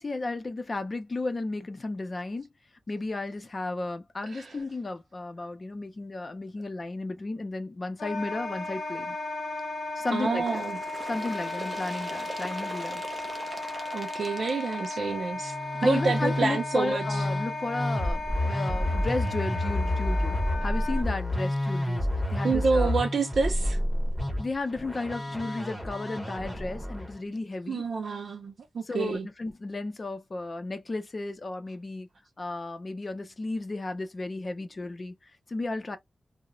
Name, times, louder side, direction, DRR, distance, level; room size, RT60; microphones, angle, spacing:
voice 1, 0.0-2.5 2.9-9.2 10.0-10.6 11.1-13.0 15.8-22.9 24.4-27.8 28.9-32.1 32.4-35.1 35.5-36.0, left 2 dB, 35° left, 0.5 m, -34 dB
Wind instrument woodwind instrument, 8.0-21.1, left 2 dB, 90° left, 0.6 m, -35 dB
voice 2, 10.1-10.8 13.9-15.5 15.8-17.3 22.4-23.8 27.7-29.3, right 4 dB, 80° right, 0.5 m, -28 dB
Bird, 10.4-15.8 16.7-16.8 17.2-17.3 18.2-18.3 19.2-19.3 20.2-20.3, right 2 dB, 30° right, 0.5 m, -42 dB
Musical instrument, 15.4-27.1, left 1 dB, 5° left, 0.8 m, -29 dB
2.3 x 2.0 x 2.9 m
wide cardioid pair, 150°, 0 cm